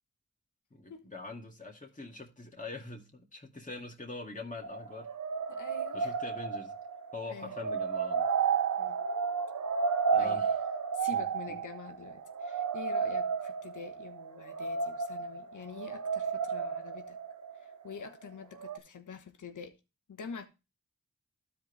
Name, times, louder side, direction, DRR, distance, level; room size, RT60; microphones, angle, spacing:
voice 1, 0.7-5.1 5.9-6.7 7.1-8.3 10.1-10.6 11.1-11.2, left 3 dB, 25° left, 2.2 m, -43 dB
sound 1, 4.6-18.2 18.6-18.8, right 6 dB, 75° right, 1.0 m, -32 dB
voice 2, 5.5-6.2 7.3-7.6 8.8-9.0 10.2-10.4 10.9-17.2 17.5-19.8 20.1-20.5, left 5 dB, 85° left, 1.1 m, -46 dB
12.0 x 5.2 x 3.2 m
cardioid pair, 40°, 30 cm